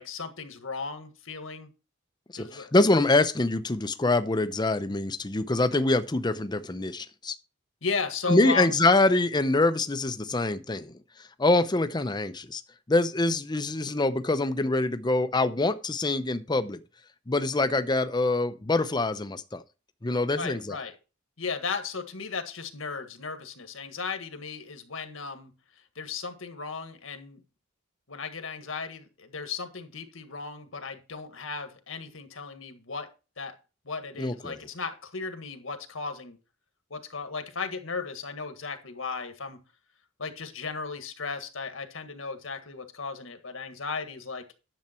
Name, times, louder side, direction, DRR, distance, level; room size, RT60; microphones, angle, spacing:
voice 1, 0.0-1.7 2.3-2.7 7.8-8.8 20.4-20.9 21.4-25.5 25.9-27.4 28.1-33.1 33.4-33.6 33.8-36.4 36.9-39.6 40.2-44.4, left 4 dB, 75° left, 1.7 m, -35 dB
voice 2, 2.3-7.4 8.3-10.9 11.4-12.6 12.9-16.8 17.3-19.6 20.0-20.8 34.2-34.6, left 2 dB, 20° left, 0.7 m, -25 dB
10.5 x 7.3 x 4.4 m
head